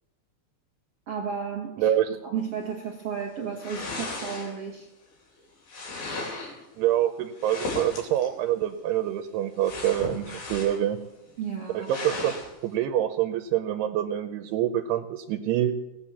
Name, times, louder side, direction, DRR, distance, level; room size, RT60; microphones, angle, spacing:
voice 1, 1.1-2.0 2.2-4.9 11.4-11.9, right 7 dB, 60° right, 1 dB, 1.6 m, -33 dB
voice 2, 1.8-2.2 6.8-11.0 11.7-12.4 12.6-15.8, right 11 dB, 85° right, 8 dB, 2.9 m, -26 dB
sound 1, 3.6-4.8 5.7-6.6 7.4-8.3 9.6-10.9 11.3-11.4 11.9-12.5, left 3 dB, 70° left, 4.9 m, -36 dB
18.5 x 7.8 x 7.2 m, 0.96 s
omnidirectional pair, 4.5 m